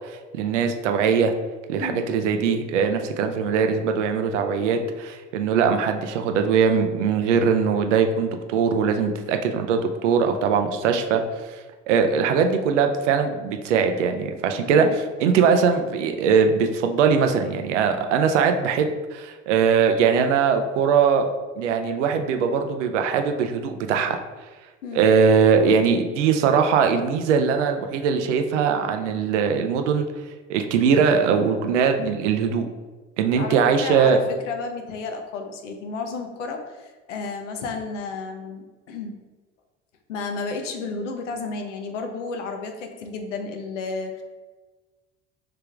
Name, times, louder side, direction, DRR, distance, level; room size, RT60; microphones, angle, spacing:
voice 1, 0.4-1.3 1.7-11.2 11.9-14.9 15.2-21.3 21.6-24.2 24.9-30.1 30.5-32.7 33.2-34.2, right 6 dB, 75° right, 6 dB, 0.5 m, -21 dB
voice 2, 14.6-14.9 24.8-25.1 33.4-39.2 40.1-44.2, left 4 dB, 75° left, 5 dB, 0.6 m, -32 dB
3.4 x 3.3 x 3.4 m, 1.3 s
figure-of-eight pair, 60°, 36 cm